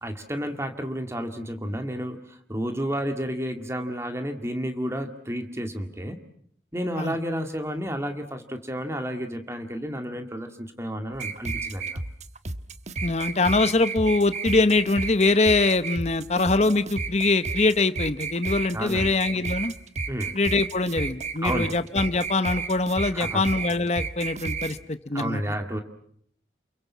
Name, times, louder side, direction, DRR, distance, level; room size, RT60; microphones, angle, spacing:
voice 1, 0.0-6.2 6.7-12.0 18.7-19.1 20.1-20.4 21.4-21.7 23.1-23.4 25.1-25.8, equal, 15° right, 6 dB, 2.0 m, -31 dB
sound 1, 11.1-24.7, right 4 dB, 40° right, 1.2 m, -32 dB
voice 2, 13.0-19.7 20.3-25.4, left 3 dB, 40° left, 12 dB, 1.0 m, -23 dB
29.0 x 23.0 x 7.3 m, 0.66 s
head